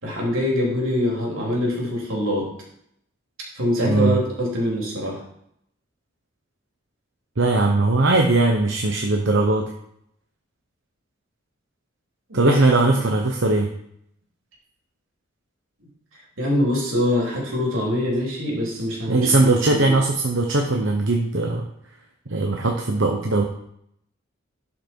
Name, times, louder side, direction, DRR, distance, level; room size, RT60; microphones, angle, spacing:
voice 1, 0.0-2.5 3.5-5.2 12.3-12.6 16.4-20.0, left 1 dB, 85° right, -3 dB, 3.7 m, -24 dB
voice 2, 3.8-4.2 7.4-9.7 12.3-13.7 19.1-21.7 22.3-23.4, right 2 dB, 65° right, 1 dB, 1.1 m, -19 dB
12.0 x 5.8 x 4.7 m, 0.73 s
head